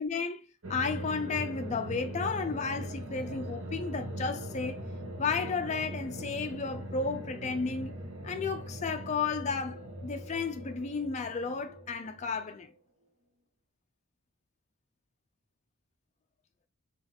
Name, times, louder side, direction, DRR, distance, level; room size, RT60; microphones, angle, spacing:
voice 1, 0.0-4.8 5.2-7.9 8.2-12.7, left 4 dB, 30° left, 0.4 m, -33 dB
sound 1, 0.6-12.7, equal, 70° right, 1.2 m, -40 dB
3.9 x 3.0 x 3.5 m
head